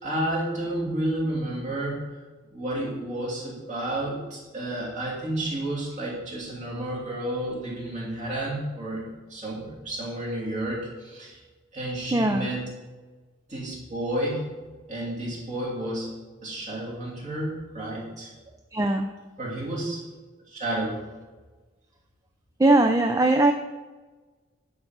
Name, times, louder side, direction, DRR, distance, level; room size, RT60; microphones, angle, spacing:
voice 1, 0.0-2.0 2.5-11.4 11.7-12.7 13.5-14.4 14.9-16.1 16.4-18.3 19.4-20.0 20.5-21.0, right 1 dB, 35° right, -6 dB, 2.8 m, -31 dB
voice 2, 12.1-12.5 18.7-19.1 22.6-23.5, right 2 dB, 15° right, 6 dB, 0.3 m, -20 dB
10.0 x 3.8 x 6.0 m, 1.3 s
head